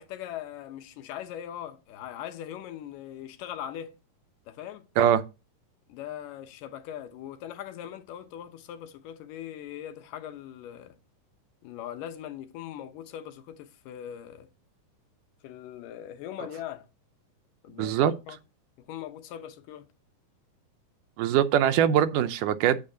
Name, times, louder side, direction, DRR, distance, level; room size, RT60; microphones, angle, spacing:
voice 1, 0.0-4.0 4.5-4.9 5.9-11.0 11.6-14.5 15.4-16.9 17.6-18.4 18.8-19.9, left 10 dB, 90° left, 2.5 m, -40 dB
voice 2, 17.8-18.1 21.2-22.8, right 10 dB, 85° right, 2.3 m, -22 dB
8.6 x 8.6 x 2.8 m
omnidirectional pair, 3.7 m